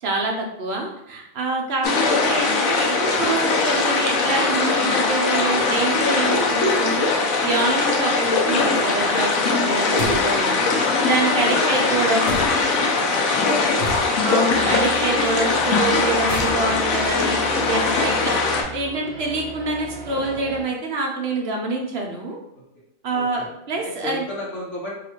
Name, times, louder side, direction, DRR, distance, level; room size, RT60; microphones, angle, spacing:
voice 1, 0.0-10.5 11.0-12.4 14.2-22.4 23.0-24.2, right 2 dB, 55° right, 0 dB, 0.8 m, -26 dB
sound 1, 1.8-18.6, left 3 dB, 80° left, 1.1 m, -21 dB
sound 2, 10.0-10.4 12.3-12.8 13.8-14.4 16.1-18.0, left 1 dB, 40° left, 0.9 m, -33 dB
voice 2, 10.3-10.9 11.3-11.7 12.0-13.9 14.5-14.7 22.5-22.6 23.1-23.5 23.8-24.9, left 1 dB, 60° left, -5 dB, 1.6 m, -34 dB
sound 3, 14.5-20.6, right 4 dB, 80° right, 0.4 m, -37 dB
3.1 x 2.8 x 4.3 m, 0.82 s
omnidirectional pair, 1.4 m